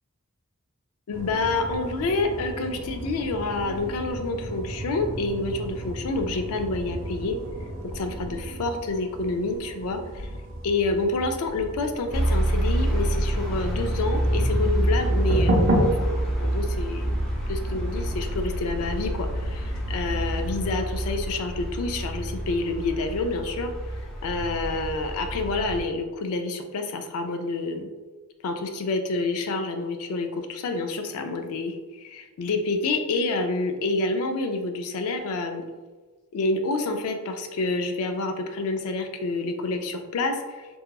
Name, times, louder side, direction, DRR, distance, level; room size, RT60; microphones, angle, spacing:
voice 1, 1.1-7.4 7.8-10.3 10.6-17.1 17.5-23.7 24.2-27.9 28.4-35.6 36.3-40.7, left 3 dB, 85° left, 6 dB, 0.3 m, -28 dB
sound 1, 1.1-20.6, equal, 65° right, 0.5 m, -33 dB
sound 2, 12.1-25.8, right 1 dB, ahead, 0.5 m, -27 dB
2.8 x 2.3 x 2.2 m, 1.3 s
head